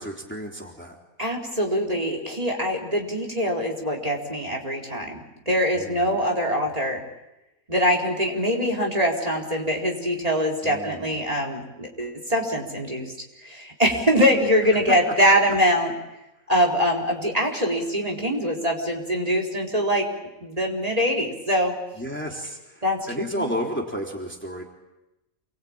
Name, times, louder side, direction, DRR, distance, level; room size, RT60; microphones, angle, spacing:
voice 1, 0.0-1.0 5.7-6.2 10.6-11.2 14.9-15.0 22.0-24.6, equal, 10° left, 0 dB, 3.6 m, -32 dB
voice 2, 1.2-7.0 7.7-13.1 13.4-15.9 16.5-20.1 20.4-21.8 22.8-23.5, equal, 25° right, 0 dB, 4.3 m, -23 dB
29.5 x 22.5 x 8.8 m, 0.95 s
omnidirectional pair, 1.4 m